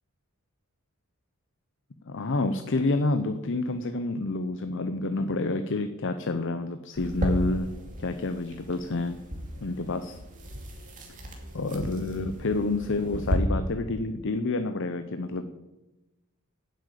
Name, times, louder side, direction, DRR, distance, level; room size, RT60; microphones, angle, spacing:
voice 1, 2.1-7.7 8.0-9.2 9.6-10.2 11.5-15.5, left 2 dB, 60° left, 9 dB, 0.7 m, -28 dB
sound 1, 6.9-13.4, equal, 40° right, 2.5 m, -35 dB
9.9 x 7.8 x 8.4 m, 1.0 s
head